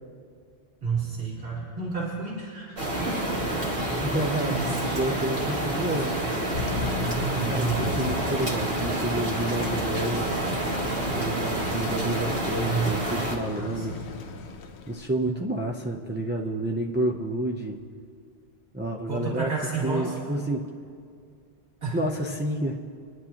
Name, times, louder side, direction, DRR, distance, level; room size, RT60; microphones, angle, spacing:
voice 1, 0.8-3.8 4.2-5.2 6.9-8.1 12.4-12.9 13.5-14.0 19.1-20.1 21.8-22.0, right 4 dB, 85° right, -6 dB, 2.8 m, -31 dB
sound 1, 2.8-13.4, right 1 dB, 60° right, 2.1 m, -28 dB
voice 2, 4.0-4.6 4.9-6.2 7.4-10.4 11.1-14.0 14.9-17.8 18.7-19.5 19.8-20.7 21.9-22.8, right 1 dB, 15° right, -1 dB, 0.5 m, -29 dB
Thunder, 6.5-15.1, left 4 dB, 90° left, 1.0 m, -36 dB
24.0 x 11.0 x 2.9 m, 2.3 s
omnidirectional pair, 1.1 m